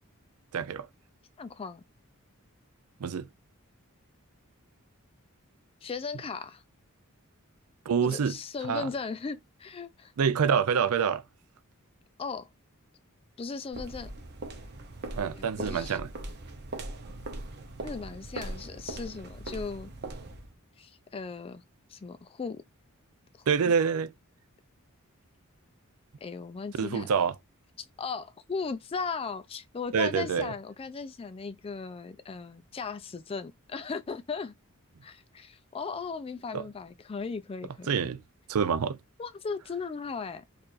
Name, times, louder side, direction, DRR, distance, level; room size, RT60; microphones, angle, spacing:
voice 1, 0.5-0.9 3.0-3.3 7.9-8.3 8.6-8.9 10.2-11.2 15.2-16.1 23.5-24.1 26.8-27.4 29.9-30.5 36.5-36.7 37.9-38.2 38.5-39.0, right 6 dB, 75° right, 0.4 m, -26 dB
voice 2, 1.4-1.8 5.8-6.6 8.0-10.1 12.2-12.5 13.4-14.1 15.3-16.0 17.8-19.9 20.8-21.6 21.9-22.6 23.7-23.8 26.2-27.1 28.0-34.5 35.0-37.9 39.2-40.4, left 5 dB, 25° left, 0.3 m, -37 dB
sound 1, 13.7-20.6, right 2 dB, 50° right, 0.8 m, -40 dB
4.6 x 2.5 x 2.5 m
head